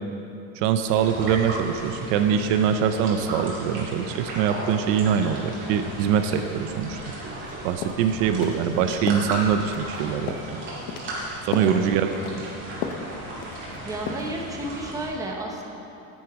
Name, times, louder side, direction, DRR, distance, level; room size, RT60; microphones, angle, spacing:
voice 1, 0.6-7.0 7.6-10.4 11.5-12.4, right 8 dB, 65° right, 8 dB, 0.7 m, -23 dB
sound 1, 0.9-15.1, right 1 dB, 30° right, 2.3 m, -36 dB
sound 2, 7.3-7.5 7.8-8.0 8.4-8.6 9.1-9.3 9.7-10.0 10.3-10.5 10.9-11.1 11.5-11.8 12.1-12.4 12.8-13.1 13.4-13.8 14.1-14.3, left 7 dB, 75° left, 0.9 m, -33 dB
voice 2, 13.8-15.6, right 1 dB, 10° right, 0 dB, 0.9 m, -32 dB
9.3 x 8.8 x 4.7 m, 2.9 s
cardioid pair, 155°, 42 cm